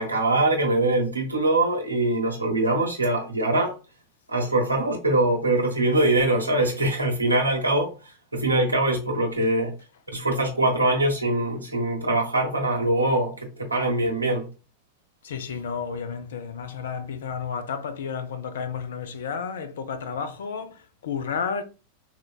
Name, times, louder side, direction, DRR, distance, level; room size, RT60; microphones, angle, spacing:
voice 1, 0.0-3.7 4.3-7.9 8.3-9.7 10.1-14.5, right 2 dB, 85° right, 1.0 m, -23 dB
voice 2, 15.2-21.6, left 6 dB, 60° left, 0.5 m, -32 dB
5.9 x 2.2 x 2.2 m
figure-of-eight pair, 90°, 0 cm